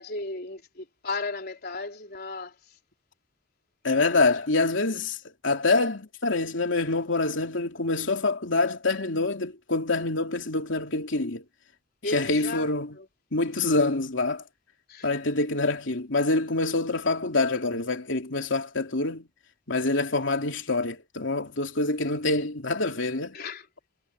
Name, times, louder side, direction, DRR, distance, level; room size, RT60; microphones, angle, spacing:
voice 1, 0.0-2.6 12.0-13.1 14.9-15.1 23.3-23.7, left 3 dB, 55° left, 4.3 m, -35 dB
voice 2, 3.8-5.2 5.4-11.4 12.1-13.0 13.3-14.4 15.0-19.3 19.7-23.4, left 3 dB, 75° left, 3.0 m, -26 dB
head